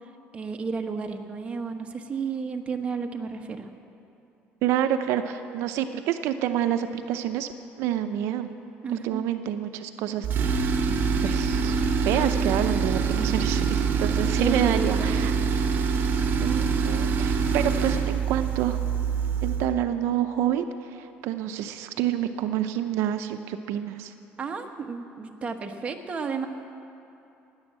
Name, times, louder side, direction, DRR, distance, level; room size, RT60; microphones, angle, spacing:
voice 1, 0.3-3.7 8.8-9.2 13.2-13.4 14.4-15.3 24.4-26.5, right 5 dB, 25° right, 4 dB, 1.2 m, -32 dB
voice 2, 4.6-7.5 7.8-8.5 8.9-10.6 10.9-15.3 16.4-18.8 19.4-24.1, right 11 dB, 80° right, 8 dB, 0.6 m, -28 dB
Tools, 10.2-19.7, right 5 dB, 50° right, 1.3 m, -25 dB
17.0 x 10.5 x 7.5 m, 2.8 s
cardioid pair, 125°, 5 cm